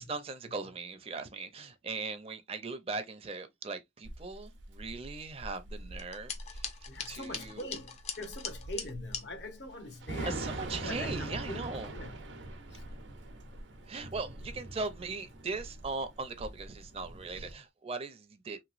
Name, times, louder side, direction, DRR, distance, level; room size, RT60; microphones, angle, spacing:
voice 1, 0.0-6.7 7.1-7.7 10.2-11.9 13.9-18.6, right 3 dB, 30° right, 0.5 m, -39 dB
Thunder / Rain, 4.0-17.5, right 2 dB, 85° right, 0.7 m, -43 dB
sound 1, 6.0-9.2, left 6 dB, 35° left, 0.5 m, -41 dB
voice 2, 6.9-11.6 11.9-12.2 12.7-12.8, left 1 dB, 65° left, 0.8 m, -43 dB
3.1 x 3.0 x 2.4 m
head